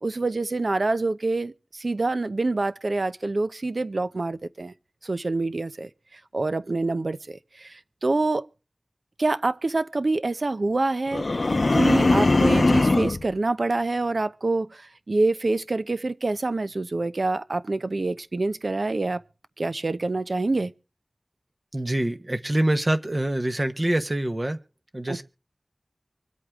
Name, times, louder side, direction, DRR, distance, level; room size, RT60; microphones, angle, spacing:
voice 1, 0.0-4.7 5.0-8.5 9.2-11.5 11.7-19.2 19.6-20.7 25.1-25.2, right 2 dB, 75° right, 0.7 m, -26 dB
sound 1, 11.1-13.2, left 2 dB, 70° left, 0.6 m, -20 dB
voice 2, 21.7-24.6 24.9-25.2, right 1 dB, 40° right, 1.2 m, -25 dB
25.0 x 8.4 x 3.6 m
wide cardioid pair, 60°, 0 cm